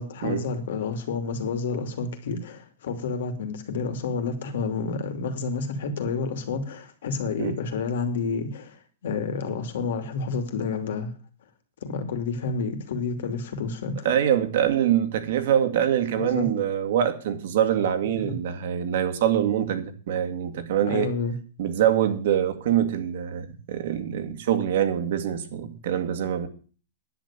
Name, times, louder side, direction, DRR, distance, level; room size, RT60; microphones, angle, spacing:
voice 1, 0.0-11.1 11.8-14.1 16.2-16.5 18.1-18.3 20.9-21.4, left 4 dB, 70° left, 2.7 m, -29 dB
voice 2, 14.0-21.1 21.6-26.5, right 10 dB, 60° right, 2.0 m, -24 dB
10.5 x 7.5 x 8.6 m
supercardioid pair, 165°, 0 cm